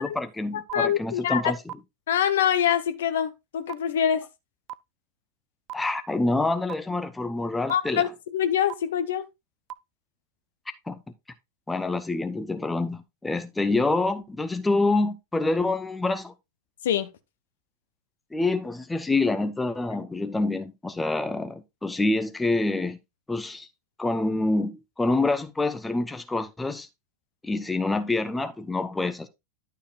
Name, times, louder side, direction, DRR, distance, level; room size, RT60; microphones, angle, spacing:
voice 1, 0.0-1.6 5.7-8.1 10.9-11.0 11.7-16.3 18.3-23.0 23.3-23.7 24.0-26.9 27.4-29.3, left 2 dB, 10° left, 0.8 m, -26 dB
voice 2, 0.5-1.5 2.1-4.3 7.7-9.3 16.8-17.1, left 9 dB, 60° left, 1.0 m, -25 dB
sound 1, 0.7-0.8 1.7-1.8 2.7-2.8 3.7-3.8 4.7-4.8 5.7-5.8 6.7-6.8 7.7-7.8 8.7-8.8 9.7-9.8, right 15 dB, 35° right, 0.4 m, -34 dB
11.5 x 6.7 x 2.5 m
figure-of-eight pair, 90°, 0 cm